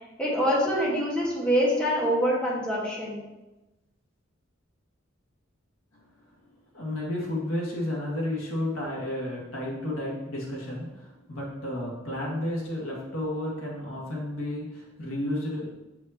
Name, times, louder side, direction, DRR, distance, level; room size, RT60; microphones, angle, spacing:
voice 1, 0.2-3.2, equal, 5° left, -6 dB, 1.4 m, -25 dB
voice 2, 6.7-15.8, left 1 dB, 85° left, -4 dB, 1.7 m, -32 dB
7.0 x 4.8 x 2.8 m, 1.0 s
head